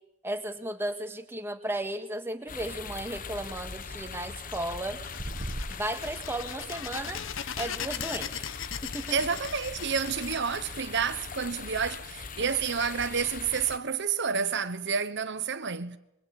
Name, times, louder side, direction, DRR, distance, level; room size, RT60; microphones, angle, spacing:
voice 1, 0.2-5.0 5.7-7.2 7.6-8.4 8.8-9.1, right 1 dB, 10° right, 1.8 m, -34 dB
sound 1, 2.5-13.8, left 5 dB, 40° left, 1.0 m, -41 dB
sound 2, 5.0-11.5, left 8 dB, 65° left, 1.1 m, -39 dB
sound 3, 5.2-5.8, right 1 dB, 30° right, 1.2 m, -35 dB
voice 2, 9.1-16.0, right 6 dB, 55° right, 0.9 m, -29 dB
26.5 x 22.0 x 8.9 m
head